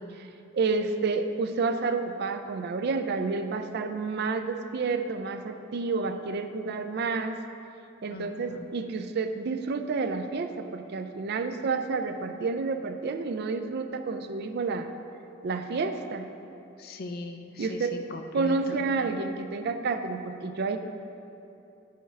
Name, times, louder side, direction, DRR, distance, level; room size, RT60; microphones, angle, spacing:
voice 1, 0.5-7.4 8.0-14.9 15.4-16.3 17.6-17.9 18.3-20.8, right 4 dB, 55° right, 8 dB, 0.4 m, -30 dB
voice 2, 8.1-8.7 16.8-19.1, left 2 dB, 50° left, 5 dB, 0.5 m, -40 dB
9.7 x 5.6 x 3.3 m, 2.8 s
head